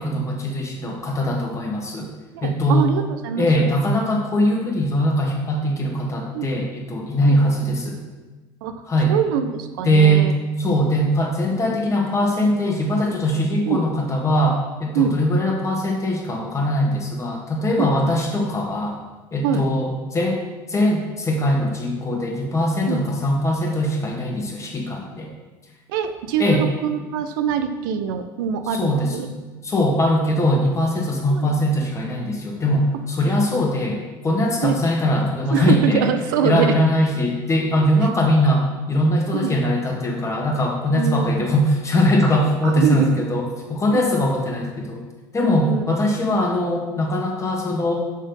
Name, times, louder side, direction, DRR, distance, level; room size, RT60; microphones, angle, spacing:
voice 1, 0.0-2.1 2.4-2.9 3.4-8.0 8.9-9.1 9.8-19.0 19.3-20.4 20.7-25.3 26.4-26.7 28.7-29.3 29.6-36.1 36.4-45.0 45.3-47.9, equal, 30° left, 0 dB, 1.7 m, -21 dB
voice 2, 2.3-3.5 6.3-6.6 7.2-7.5 8.6-8.8 9.1-10.3 13.7-13.8 15.0-15.1 17.8-18.1 19.4-19.6 22.9-23.0 25.9-29.3 31.3-31.5 33.5-33.6 34.6-34.8 35.5-36.7 39.3-39.5 40.9-41.5 42.6-43.1 43.9-44.0 45.4-45.8, right 8 dB, 85° right, 8 dB, 0.5 m, -24 dB
6.3 x 4.4 x 5.3 m, 1.2 s
supercardioid pair, 90°, 10 cm